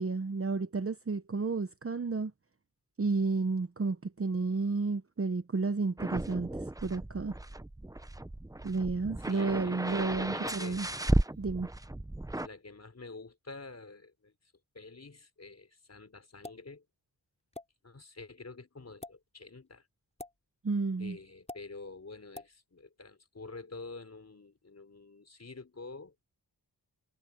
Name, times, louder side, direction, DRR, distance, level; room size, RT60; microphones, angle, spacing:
voice 1, 0.0-2.3 3.0-6.6 6.8-7.3 8.6-10.9 11.4-11.7 20.6-21.2, right 3 dB, 35° right, 1.0 m, -31 dB
sound 1, 6.0-12.5, right 1 dB, 10° right, 0.8 m, -34 dB
voice 2, 9.2-11.0 12.4-14.3 14.7-16.8 17.8-19.9 21.0-26.1, left 3 dB, 40° left, 4.8 m, -48 dB
sound 2, 16.4-16.7 17.5-17.7 18.9-19.1 20.2-20.4 21.5-21.6 22.3-22.5, left 2 dB, 15° left, 4.2 m, -44 dB
wide cardioid pair, 100°, 41 cm